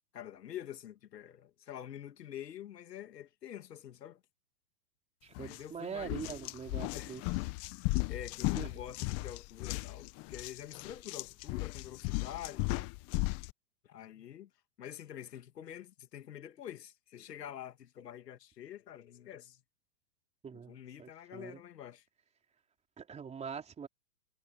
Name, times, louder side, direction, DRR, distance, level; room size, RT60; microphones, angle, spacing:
voice 1, 0.0-4.2 5.3-6.2 6.9-7.2 8.1-12.9 13.8-14.5 14.8-19.6 20.5-22.1, left 10 dB, 80° left, 2.8 m, -47 dB
voice 2, 5.2-7.2 8.5-8.7 20.4-21.6 23.0-23.9, right 6 dB, 15° right, 4.1 m, -43 dB
sound 1, 5.4-5.6 6.0-13.5, left 22 dB, 30° left, 1.2 m, -36 dB
hypercardioid pair, 145°, 48 cm